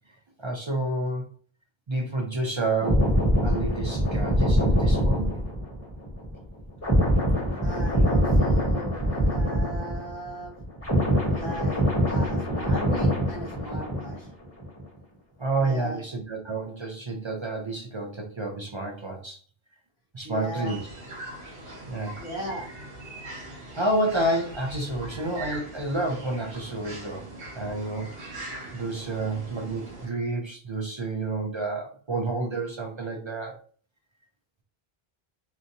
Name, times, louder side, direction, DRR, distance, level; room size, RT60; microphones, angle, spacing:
voice 1, 0.4-1.3 1.9-5.3 15.4-19.4 20.1-20.9 21.9-22.2 23.7-27.2 27.5-33.6, right 2 dB, 50° right, 1 dB, 0.3 m, -30 dB
sound 1, 2.8-10.3 10.6-14.3 14.6-14.8, equal, 15° left, 1.3 m, -24 dB
voice 2, 7.6-10.5 11.3-14.3 15.6-16.0 20.2-20.8 22.2-22.7, equal, 45° left, -6 dB, 0.9 m, -37 dB
sound 2, 20.7-30.1, right 1 dB, 75° right, 1.2 m, -41 dB
2.8 x 2.5 x 2.6 m, 0.43 s
omnidirectional pair, 1.0 m